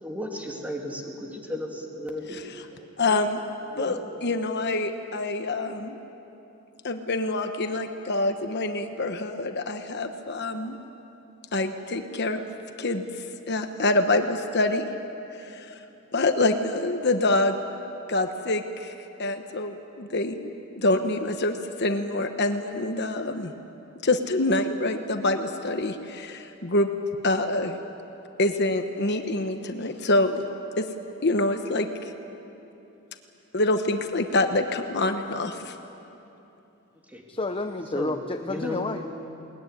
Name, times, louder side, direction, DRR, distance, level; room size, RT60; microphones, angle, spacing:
voice 1, 0.0-2.4 2.7-2.9 3.6-4.0 37.1-37.2 37.9-38.2 38.5-39.0, left 1 dB, 5° right, 0 dB, 2.5 m, -34 dB
voice 2, 3.0-3.4 3.8-6.0 6.8-10.8 11.5-12.4 12.8-14.9 15.3-15.8 16.1-17.6 18.1-18.9 19.2-23.5 24.0-26.9 27.2-27.8 28.4-30.4 30.8-30.9 31.2-32.1 33.5-35.7, left 2 dB, 50° left, 7 dB, 1.1 m, -26 dB
voice 3, 37.3-39.0, left 2 dB, 25° left, 6 dB, 0.7 m, -30 dB
21.5 x 20.0 x 9.8 m, 3.0 s
head